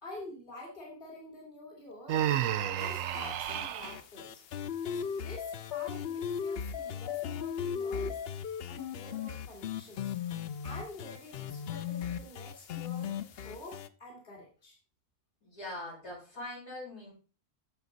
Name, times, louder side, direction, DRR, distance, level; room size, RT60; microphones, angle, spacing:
voice 1, 0.0-4.4 4.9-8.2 8.7-10.2 10.6-14.8, left 1 dB, 30° left, -1 dB, 3.3 m, -48 dB
Human voice, 2.1-4.0, right 11 dB, 65° right, 0.9 m, -31 dB
sound 1, 2.8-13.9, left 8 dB, 65° left, 0.6 m, -37 dB
voice 2, 15.4-17.1, left 1 dB, 90° left, -4 dB, 6.4 m, -42 dB
11.0 x 6.9 x 4.0 m, 0.36 s
omnidirectional pair, 1.6 m